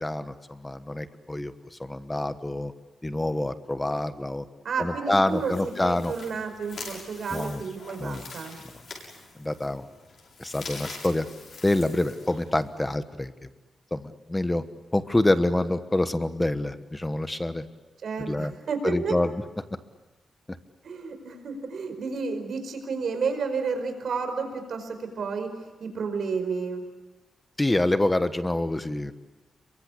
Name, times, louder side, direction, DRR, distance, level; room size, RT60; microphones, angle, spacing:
voice 1, 0.0-1.5 1.8-2.7 3.0-4.5 4.8-6.1 7.3-7.6 8.0-8.2 9.4-9.9 10.4-11.3 11.6-13.3 13.9-14.6 14.9-17.6 18.2-18.5 18.8-19.3 27.6-29.1, left 1 dB, 10° left, 10 dB, 1.2 m, -26 dB
voice 2, 4.6-5.5 5.8-8.6 18.0-19.2 20.8-26.8, right 5 dB, 55° right, 7 dB, 5.1 m, -31 dB
sound 1, 5.1-12.8, left 4 dB, 50° left, 7.5 m, -44 dB
29.0 x 23.5 x 8.3 m, 1.2 s
wide cardioid pair, 165°, 0 cm